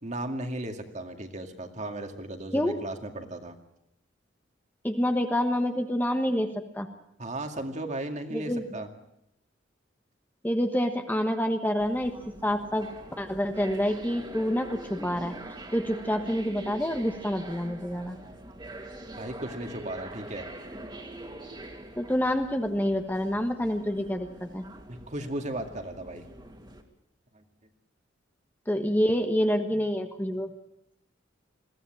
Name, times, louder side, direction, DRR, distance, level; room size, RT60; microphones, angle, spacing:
voice 1, 0.0-3.6 7.2-8.9 19.2-20.5 24.9-26.2 27.3-27.4, right 1 dB, 40° right, 5 dB, 2.3 m, -36 dB
voice 2, 4.8-6.5 6.7-6.9 8.3-8.6 10.4-12.1 12.4-12.9 13.2-15.3 15.7-18.2 22.0-24.6 28.7-30.5, equal, 10° left, 6 dB, 1.3 m, -27 dB
sound 1, 11.8-26.8, right 1 dB, 25° right, 2.5 m, -44 dB
21.5 x 16.0 x 9.0 m, 0.78 s
head